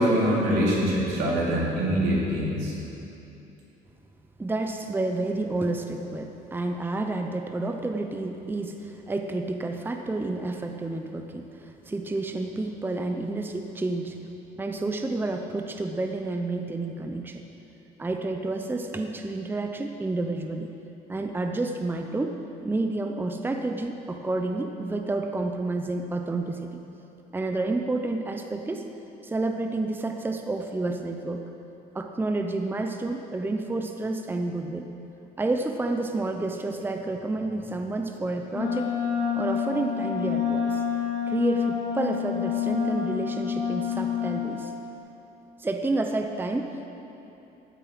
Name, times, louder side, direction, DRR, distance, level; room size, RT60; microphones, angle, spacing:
voice 1, 0.0-2.7, equal, 80° right, -5 dB, 3.6 m, -24 dB
voice 2, 4.4-14.2 14.6-17.4 18.0-20.7 21.1-26.7 27.3-28.8 29.2-31.4 31.9-34.9 35.4-38.9 39.4-40.8 41.3-44.7 45.6-46.9, right 2 dB, 10° right, 4 dB, 0.7 m, -30 dB
Wind instrument woodwind instrument, 38.5-44.5, left 8 dB, 90° left, 3.0 m, -28 dB
14.5 x 8.9 x 6.0 m, 3.0 s
cardioid pair, 110°, 17 cm